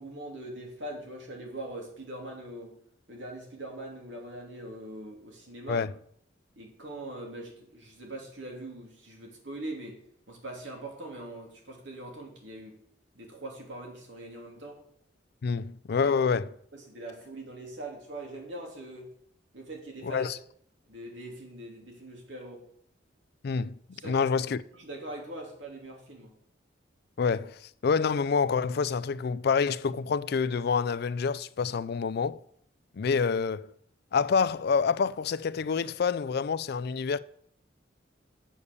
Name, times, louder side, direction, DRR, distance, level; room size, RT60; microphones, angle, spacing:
voice 1, 0.0-2.7 3.1-5.8 6.6-10.0 10.3-12.8 13.1-14.8 16.7-19.1 19.5-20.3 20.9-22.7 23.9-24.3 24.7-26.3, right 1 dB, 80° right, 2.9 m, -42 dB
voice 2, 15.4-16.5 20.0-20.4 23.4-23.7 24.0-24.6 27.2-32.4 33.0-33.7 34.1-37.2, left 5 dB, 60° left, 0.4 m, -27 dB
8.4 x 7.0 x 6.7 m
head